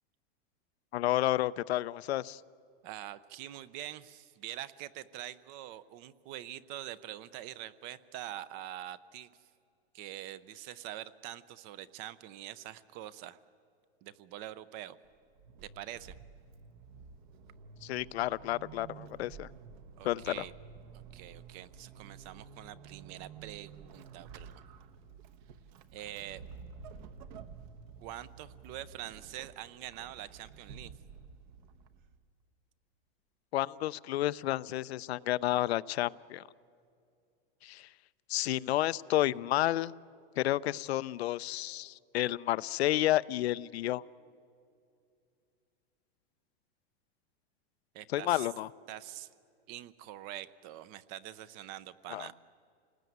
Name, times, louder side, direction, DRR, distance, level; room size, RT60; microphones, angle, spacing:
voice 1, 0.9-2.4 17.8-19.5 20.0-20.4 33.5-36.4 37.6-37.9 38.3-39.9 40.4-44.0 48.1-48.7 52.1-52.3, left 15 dB, 80° left, 16 dB, 0.6 m, -31 dB
voice 2, 2.8-9.3 9.9-13.4 14.0-15.0 15.8-16.1 20.0-20.5 20.9-24.6 25.9-26.4 28.0-30.9 47.9-48.5 48.9-49.3 49.7-52.3, right 13 dB, 30° right, 18 dB, 0.6 m, -45 dB
Vehicle / Accelerating revving vroom / Squeak, 15.0-32.3, right 6 dB, 50° right, 1.2 m, -51 dB
28.0 x 19.5 x 9.3 m, 2.4 s
supercardioid pair, 165°, 31 cm